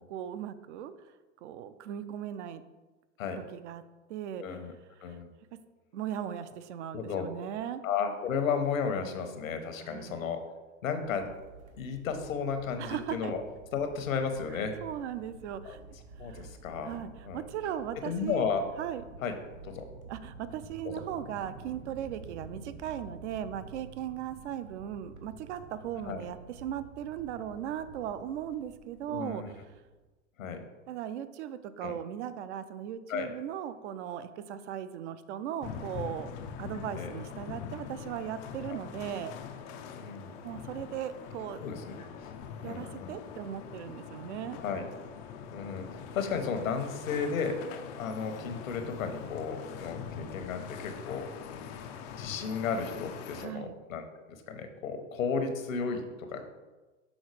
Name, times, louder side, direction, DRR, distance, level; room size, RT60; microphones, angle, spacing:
voice 1, 0.1-0.9 1.4-2.6 3.5-3.8 4.1-4.6 5.1-5.2 5.9-7.8 9.8-10.2 12.8-13.3 14.8-15.8 16.2-16.5 16.8-18.5 18.8-19.0 20.1-29.6 30.9-36.3 36.6-39.3 40.4-41.6 42.6-44.6 53.4-53.7, right 10 dB, 60° right, 12 dB, 0.6 m, -38 dB
voice 2, 4.4-4.7 5.0-5.3 6.9-7.3 7.8-10.4 10.8-11.3 11.8-13.4 13.7-14.8 15.6-15.8 16.2-17.0 17.2-17.4 18.0-18.6 19.2-19.3 19.6-19.8 20.8-21.0 26.1-26.3 29.1-29.5 30.4-30.6 31.8-31.9 33.1-33.3 36.9-37.2 38.7-38.8 39.9-40.3 41.6-41.9 42.2-42.3 42.6-43.2 44.6-44.9 45.5-47.6 48.0-51.3 52.2-56.4, left 6 dB, 75° left, 7 dB, 1.1 m, -33 dB
sound 1, 11.0-30.0, right 3 dB, 85° right, 1.2 m, -50 dB
sound 2, 35.6-53.5, left 7 dB, 25° left, 0.3 m, -43 dB
6.4 x 3.8 x 4.8 m, 1.2 s
hypercardioid pair, 105°, 41 cm